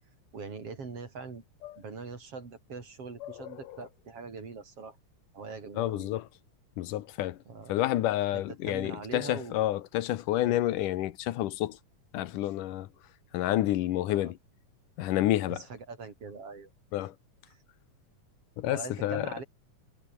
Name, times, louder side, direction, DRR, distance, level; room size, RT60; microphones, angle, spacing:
voice 1, 0.3-1.4 1.8-5.0 5.3-6.1 7.5-7.8 8.3-9.7 10.4-10.7 14.1-14.3 15.5-16.7 17.5-17.6 18.7-19.4, right 4 dB, 45° right, 4.8 m, -42 dB
voice 2, 5.8-6.2 6.8-7.4 7.7-11.8 12.1-12.9 13.3-14.3 15.0-15.6 16.9-17.1 18.6-19.3, left 14 dB, 85° left, 2.6 m, -29 dB
omnidirectional pair, 3.7 m